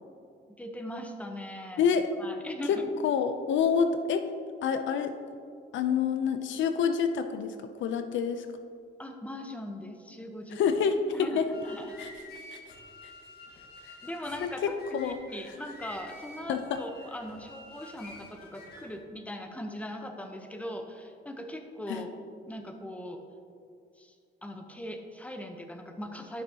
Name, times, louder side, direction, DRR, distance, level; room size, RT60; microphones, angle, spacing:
voice 1, 0.6-1.9 2.2-2.9 9.0-10.6 11.1-11.4 11.6-12.0 14.0-22.1 22.5-23.2 24.0-24.2 24.4-26.4, left 1 dB, 5° left, 5 dB, 0.8 m, -40 dB
voice 2, 1.8-2.1 2.7-2.8 3.0-4.3 4.6-5.1 5.7-7.5 7.8-8.5 10.6-11.0 11.4-11.5 12.0-12.1 12.5-12.6 14.4-15.2 16.5-16.8 21.9-22.0, left 7 dB, 70° left, 9 dB, 0.5 m, -27 dB
sound 1, 11.3-19.0, left 1 dB, 50° left, 1.8 m, -49 dB
12.0 x 6.1 x 2.8 m, 2.4 s
cardioid pair, 90°, 20 cm